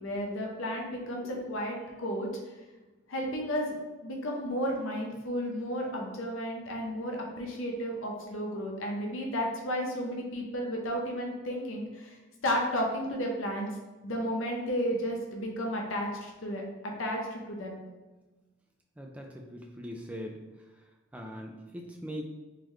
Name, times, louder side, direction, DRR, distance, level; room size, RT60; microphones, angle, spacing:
voice 1, 0.0-2.3 3.1-3.7 4.0-12.2 12.4-13.7 14.0-17.8, equal, 70° left, 0 dB, 0.7 m, -33 dB
voice 2, 19.0-20.4 21.1-22.2, equal, 5° right, 1 dB, 0.3 m, -41 dB
3.8 x 3.1 x 3.1 m, 1.2 s
head